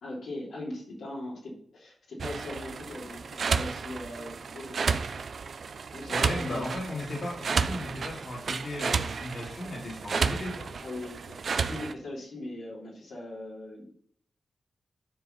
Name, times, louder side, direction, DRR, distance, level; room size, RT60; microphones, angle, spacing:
voice 1, 0.0-4.9 5.9-6.8 10.8-13.9, left 1 dB, 85° left, -5 dB, 3.4 m, -40 dB
sound 1, 2.2-11.9, right 5 dB, 70° right, 0.6 m, -32 dB
voice 2, 6.1-10.7, left 1 dB, 60° left, -3 dB, 2.6 m, -36 dB
10.5 x 4.8 x 5.6 m, 0.65 s
cardioid pair, 45°, 0 cm